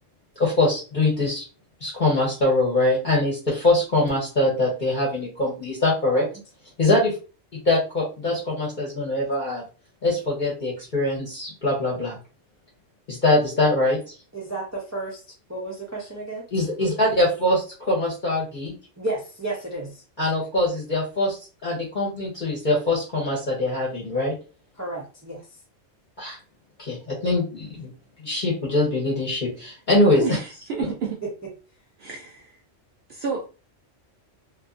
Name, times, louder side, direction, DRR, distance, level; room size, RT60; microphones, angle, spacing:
voice 1, 0.4-1.4 1.8-6.2 6.8-7.2 7.6-9.6 10.0-12.2 13.1-14.0 16.5-18.7 20.2-24.3 26.2-26.4 26.8-27.9 28.2-30.4, left 2 dB, 45° left, -4 dB, 0.9 m, -23 dB
voice 2, 14.3-15.2 15.5-16.4 19.0-20.0 24.8-25.5, right 2 dB, 25° right, -2 dB, 0.4 m, -32 dB
voice 3, 30.2-31.2 32.0-32.6 33.1-33.4, right 5 dB, 60° right, 0 dB, 0.7 m, -30 dB
2.6 x 2.5 x 2.4 m, 0.34 s
omnidirectional pair, 1.3 m